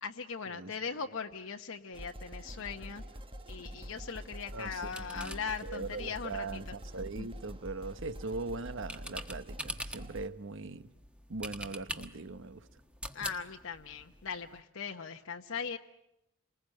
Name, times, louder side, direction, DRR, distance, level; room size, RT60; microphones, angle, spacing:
voice 1, 0.0-3.0 3.5-6.7 7.2-7.3 13.1-15.8, left 6 dB, 65° left, 1.0 m, -39 dB
sound 1, 1.9-10.3, equal, 25° right, 1.1 m, -46 dB
sound 2, 3.6-14.6, equal, 5° right, 1.3 m, -47 dB
voice 2, 4.5-10.9 11.3-12.7, right 3 dB, 60° right, 1.0 m, -41 dB
28.5 x 20.5 x 9.1 m
head